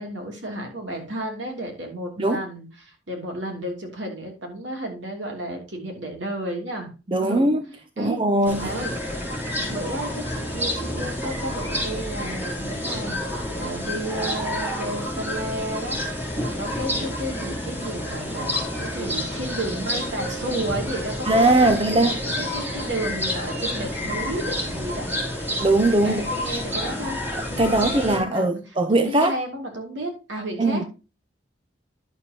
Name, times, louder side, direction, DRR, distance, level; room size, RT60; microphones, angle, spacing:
voice 1, 0.0-6.9 7.2-7.5 8.0-8.2 8.6-8.9 9.7-13.2 13.5-25.5 26.0-27.2 27.5-30.9, right 1 dB, 80° right, 3.0 m, -32 dB
voice 2, 7.1-7.6 8.0-8.7 21.2-22.2 25.6-26.2 27.6-29.4 30.6-30.8, right 2 dB, 25° right, 0.6 m, -20 dB
sound 1, 8.4-28.2, left 1 dB, 10° right, 2.9 m, -29 dB
11.0 x 7.1 x 2.9 m
head